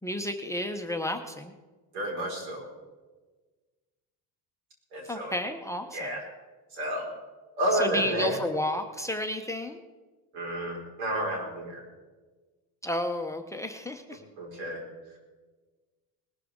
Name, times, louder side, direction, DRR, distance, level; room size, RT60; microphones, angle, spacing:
voice 1, 0.0-1.5 5.1-6.1 7.8-9.8 12.8-14.2, left 1 dB, 5° left, 7 dB, 0.8 m, -32 dB
voice 2, 1.9-2.7 4.9-5.4 5.9-6.3 6.7-7.1 7.6-8.4 10.3-11.8 14.1-14.8, right 1 dB, 85° right, 0 dB, 5.2 m, -31 dB
19.5 x 13.0 x 3.7 m, 1.3 s
cardioid pair, 125°, 46 cm